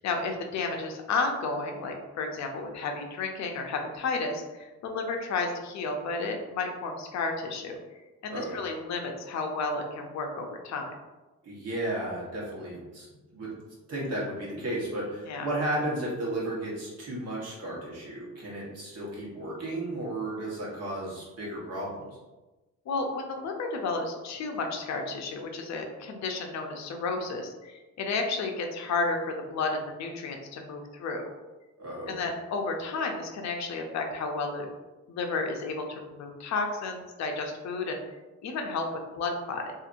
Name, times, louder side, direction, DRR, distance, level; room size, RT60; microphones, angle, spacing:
voice 1, 0.0-7.8 8.2-10.9 15.3-15.5 22.9-31.2 32.1-34.7 35.1-38.0 38.4-39.7, left 3 dB, 65° left, 3 dB, 0.5 m, -32 dB
voice 2, 8.3-8.6 11.4-13.1 13.3-13.5 13.9-22.2 31.8-32.2, right 1 dB, 55° right, -5 dB, 1.2 m, -34 dB
2.7 x 2.5 x 2.5 m, 1.1 s
cardioid pair, 90°, 30 cm